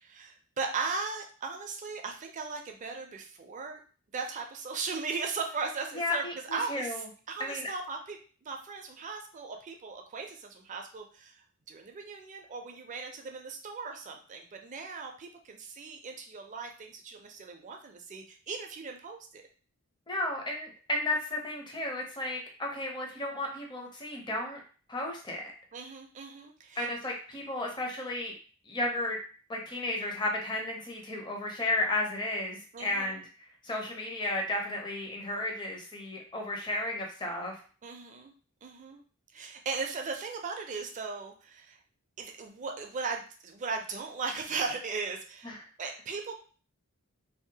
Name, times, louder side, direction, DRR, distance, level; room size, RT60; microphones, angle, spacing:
voice 1, 0.0-3.8 4.1-8.2 8.4-19.4 25.7-26.9 32.7-33.2 37.8-38.3 38.6-39.0 39.3-41.8 42.2-46.4, right 4 dB, 35° right, 4 dB, 0.4 m, -38 dB
voice 2, 5.9-7.1 7.4-7.7 20.1-24.6 24.9-25.4 26.8-28.3 28.7-29.2 29.5-33.2 33.6-37.6 45.4-45.6, left 2 dB, 20° left, 0 dB, 0.5 m, -33 dB
2.7 x 2.0 x 2.7 m, 0.40 s
head